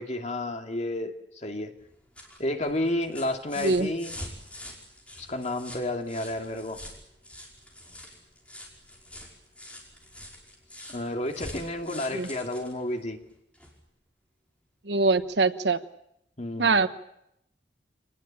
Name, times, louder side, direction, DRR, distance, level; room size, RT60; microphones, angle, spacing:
voice 1, 0.0-1.7 2.4-4.1 5.2-6.8 10.9-13.2 16.4-16.8, left 1 dB, 40° left, 4 dB, 2.6 m, -31 dB
sound 1, 1.8-13.8 15.1-15.2, left 1 dB, 10° left, 5.4 m, -45 dB
voice 2, 14.9-15.8 16.6-16.9, right 3 dB, 80° right, 11 dB, 1.2 m, -23 dB
26.0 x 19.0 x 8.9 m, 0.81 s
head